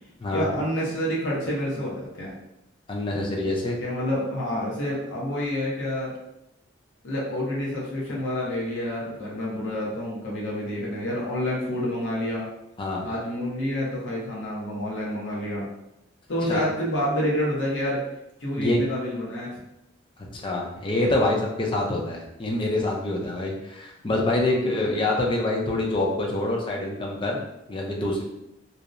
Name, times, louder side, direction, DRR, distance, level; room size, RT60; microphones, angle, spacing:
voice 1, 0.3-2.3 3.8-6.1 7.0-12.4 13.0-15.7 16.3-18.0 18.4-19.5 24.5-24.9, left 1 dB, 70° left, -5 dB, 0.7 m, -28 dB
voice 2, 2.9-3.8 12.8-13.1 16.5-16.7 18.6-18.8 20.3-27.4 27.7-28.2, left 2 dB, 25° left, -1 dB, 0.4 m, -26 dB
2.7 x 2.0 x 2.4 m, 0.87 s
head